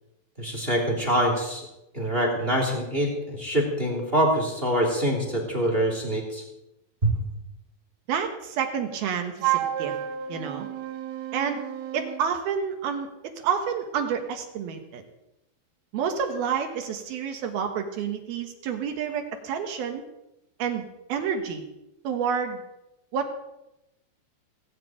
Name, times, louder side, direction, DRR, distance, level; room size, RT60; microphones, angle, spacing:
voice 1, 0.4-1.7 1.9-6.4 7.0-7.1, right 1 dB, 15° right, 1 dB, 2.3 m, -25 dB
voice 2, 8.1-10.0 10.3-10.7 11.3-11.6 11.9-15.0 15.9-20.0 20.6-21.6 22.0-22.6 23.1-23.3, right 7 dB, 65° right, 5 dB, 2.7 m, -29 dB
Wind instrument woodwind instrument, 9.4-12.3, right 12 dB, 90° right, 3.8 m, -30 dB
18.0 x 7.6 x 9.0 m, 0.89 s
omnidirectional pair, 5.6 m